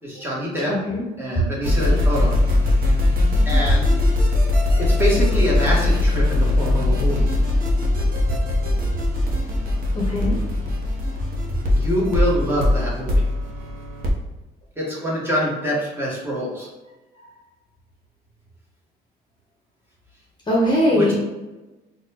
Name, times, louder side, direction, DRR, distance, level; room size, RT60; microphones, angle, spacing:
voice 1, 0.0-0.7 1.2-2.4 3.4-3.9 4.8-7.3 11.7-13.2 14.8-16.7 20.9-21.2, equal, 15° right, -5 dB, 1.2 m, -25 dB
voice 2, 0.7-1.0 9.9-10.4 17.2-17.3 20.5-21.2, left 1 dB, 25° left, -4 dB, 0.9 m, -20 dB
sound 1, 1.6-14.1, left 1 dB, 55° right, 0.8 m, -20 dB
3.8 x 2.3 x 2.9 m, 1.1 s
cardioid pair, 110°, 17 cm